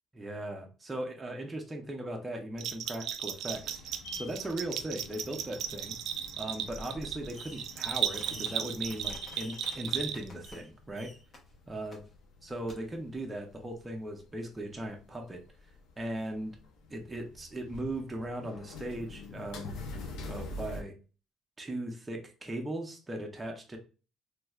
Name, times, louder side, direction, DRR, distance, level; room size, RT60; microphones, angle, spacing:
voice 1, 0.1-5.9 6.4-11.1 11.7-12.0 12.4-15.4 16.0-16.6 16.9-19.8 20.3-20.9 21.6-23.8, right 1 dB, 15° right, 1 dB, 0.5 m, -38 dB
Bell, 2.6-10.5, right 10 dB, 70° right, 0.3 m, -35 dB
sound 1, 3.5-20.8, left 2 dB, 75° left, 0.6 m, -47 dB
Fireworks, 7.3-7.8 8.0-10.7 10.9-11.4 11.9-12.0 12.7-12.8, left 1 dB, 30° left, 0.8 m, -50 dB
3.1 x 3.0 x 2.3 m, 0.34 s
cardioid pair, 155°, 0 cm